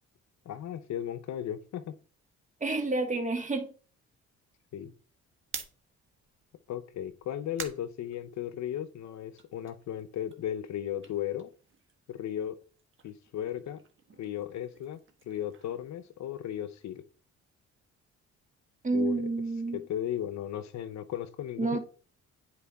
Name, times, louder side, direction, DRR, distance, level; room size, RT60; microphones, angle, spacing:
voice 1, 0.4-2.0 4.7-4.9 6.7-11.5 12.1-12.6 13.0-13.8 14.2-17.0 18.9-19.2 19.7-21.8, left 10 dB, 65° left, 0.7 m, -36 dB
voice 2, 2.6-3.7 18.8-19.8 21.6-21.8, right 3 dB, 25° right, 1.7 m, -29 dB
sound 1, 5.3-8.9 9.2-12.2 12.5-16.6, right 6 dB, 40° right, 1.5 m, -48 dB
9.8 x 4.6 x 3.5 m
cardioid pair, 90°, 30 cm